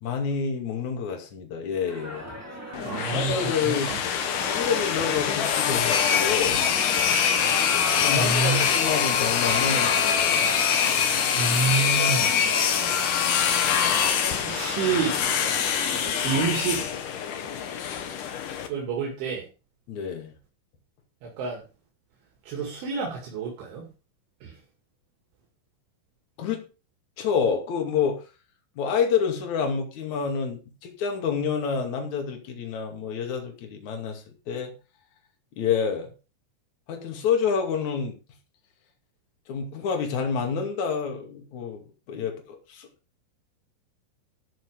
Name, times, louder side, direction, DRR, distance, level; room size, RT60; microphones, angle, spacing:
voice 1, 0.0-2.2 3.1-6.6 7.9-10.5 19.9-20.3 26.4-26.6 27.2-28.2 28.8-34.7 35.6-36.1 36.9-38.2 39.5-41.8 42.1-42.4 42.7-42.9, left 6 dB, 45° left, 3 dB, 2.9 m, -28 dB
sound 1, 1.8-16.5, equal, 5° right, 1.8 m, -39 dB
sound 2, 2.7-18.7, left 8 dB, 85° left, 1.8 m, -24 dB
voice 2, 2.8-3.3 3.6-4.0 8.1-8.7 10.8-11.1 11.4-12.3 13.6-13.9 14.4-15.2 16.2-16.9 18.2-18.4 18.7-19.5 21.2-21.6 22.4-23.9 24.4-24.5, right 5 dB, 70° right, -1 dB, 4.5 m, -28 dB
13.5 x 6.1 x 5.0 m, 0.33 s
omnidirectional pair, 5.8 m